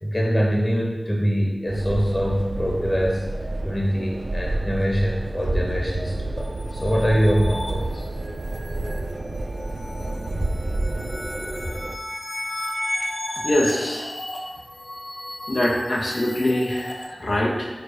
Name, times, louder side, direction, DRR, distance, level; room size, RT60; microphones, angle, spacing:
voice 1, 0.0-3.2 3.6-8.1, equal, 25° left, -2 dB, 1.2 m, -23 dB
sound 1, 1.7-12.0, right 2 dB, 70° right, 0.4 m, -29 dB
sound 2, 6.4-17.0, left 1 dB, 55° left, 1.2 m, -34 dB
voice 2, 13.4-14.0 15.5-17.7, left 1 dB, 85° left, -4 dB, 1.4 m, -23 dB
5.0 x 4.5 x 5.2 m, 1.2 s
wide cardioid pair, 45°, 0 cm